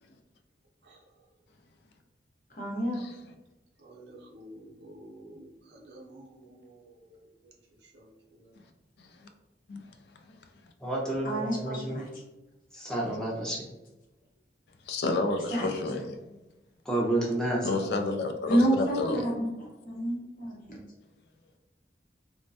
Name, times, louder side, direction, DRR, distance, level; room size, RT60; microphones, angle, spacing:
voice 1, 2.5-3.0 11.2-12.0 15.5-15.7 18.5-20.8, right 1 dB, 50° left, -3 dB, 0.8 m, -29 dB
voice 2, 3.8-7.5 7.8-8.6, right 1 dB, 80° right, 0 dB, 0.6 m, -51 dB
voice 3, 10.8-12.0 12.7-13.6 16.8-18.0, right 1 dB, 5° left, -4 dB, 0.6 m, -30 dB
voice 4, 14.9-16.4 17.6-19.2, left 2 dB, 70° left, 6 dB, 0.3 m, -30 dB
3.1 x 2.1 x 2.6 m, 1.0 s
head